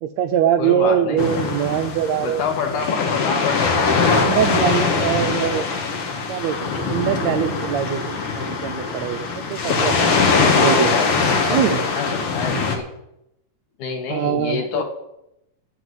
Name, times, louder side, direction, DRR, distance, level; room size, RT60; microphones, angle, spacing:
voice 1, 0.0-2.5 4.2-5.7 6.3-10.2 10.5-11.0 11.4-11.8 14.1-14.8, right 10 dB, 80° right, 8 dB, 1.6 m, -23 dB
voice 2, 0.6-1.2 2.2-4.4 10.2-12.9 13.8-14.8, left 6 dB, 70° left, 4 dB, 2.9 m, -28 dB
sound 1, 1.2-12.8, left 4 dB, 50° left, 2.1 m, -21 dB
11.0 x 8.0 x 7.9 m, 0.85 s
omnidirectional pair, 3.7 m